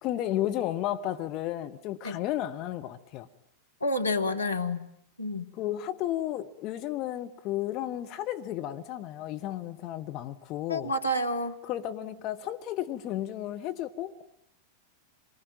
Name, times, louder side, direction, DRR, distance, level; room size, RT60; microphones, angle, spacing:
voice 1, 0.0-3.3 5.5-10.9 11.7-14.2, left 13 dB, 40° left, 7 dB, 1.4 m, -33 dB
voice 2, 3.8-4.9 5.2-5.5 10.7-11.6, left 1 dB, 80° left, 5 dB, 1.7 m, -29 dB
28.0 x 23.5 x 9.0 m, 0.72 s
figure-of-eight pair, 90°, 0 cm